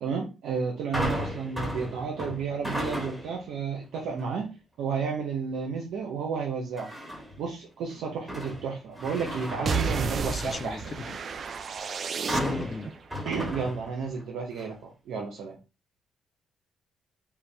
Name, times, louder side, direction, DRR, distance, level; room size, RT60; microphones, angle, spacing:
voice 1, 0.0-6.9 7.4-10.8 13.2-15.6, right 5 dB, 85° right, 0.8 m, -32 dB
sound 1, 0.9-3.5 3.9-4.3 6.8-7.4 7.9-10.8 12.3-14.2 14.6-14.7, equal, 10° right, 1.4 m, -35 dB
sound 2, 9.7-12.9, right 5 dB, 50° right, 0.4 m, -31 dB
voice 2, 10.0-11.2 12.3-12.9, left 4 dB, 35° left, 0.4 m, -36 dB
4.6 x 2.3 x 3.3 m
cardioid pair, 90°, 0 cm